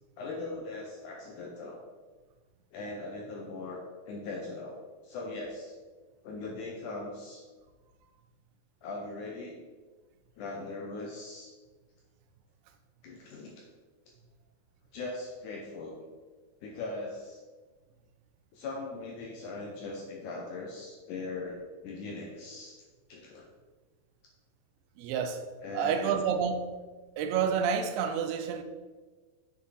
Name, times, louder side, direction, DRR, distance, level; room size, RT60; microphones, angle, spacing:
voice 1, 0.2-1.8 2.7-5.8 6.2-7.4 8.8-9.6 10.4-11.5 13.0-13.6 14.9-15.9 16.6-17.4 18.5-22.8 23.1-23.5 25.6-26.2, left 3 dB, 75° left, 1.9 m, -40 dB
voice 2, 25.0-25.4 25.7-26.6 27.2-28.6, right 7 dB, 85° right, 2.7 m, -29 dB
7.6 x 6.0 x 4.1 m
omnidirectional pair, 4.4 m